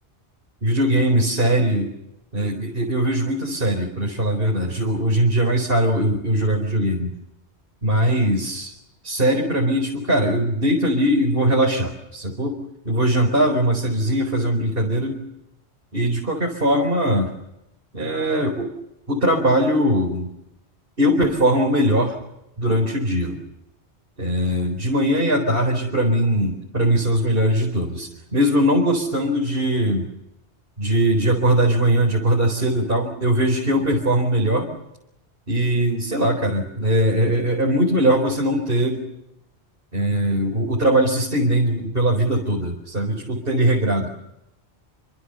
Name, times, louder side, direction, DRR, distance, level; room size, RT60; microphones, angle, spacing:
voice 1, 0.6-1.9 2.3-7.1 7.8-8.7 9.0-12.6 12.8-15.2 15.9-17.3 17.9-18.7 19.1-20.3 21.0-22.2 22.6-23.4 24.2-30.1 30.8-34.7 35.5-39.0 39.9-44.1, right 1 dB, 55° right, 1 dB, 4.7 m, -20 dB
29.0 x 25.0 x 6.9 m, 0.87 s
omnidirectional pair, 1.2 m